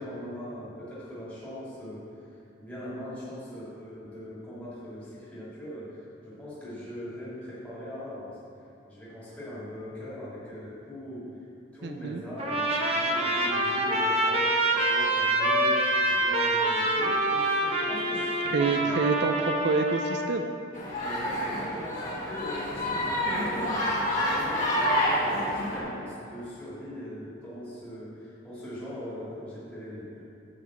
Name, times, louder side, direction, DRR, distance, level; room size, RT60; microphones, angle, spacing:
voice 1, 0.0-2.0 2.6-8.4 8.9-11.3 11.7-18.9 20.9-23.9 24.2-30.2, left 1 dB, 10° left, -11 dB, 2.1 m, -40 dB
voice 2, 11.8-12.2 18.5-20.4, right 4 dB, 60° right, 5 dB, 0.4 m, -27 dB
Trumpet, 12.4-20.3, right 1 dB, 30° right, 0.8 m, -26 dB
sound 1, 20.7-25.8, equal, 40° left, 1.8 m, -28 dB
9.8 x 4.0 x 7.2 m, 2.9 s
head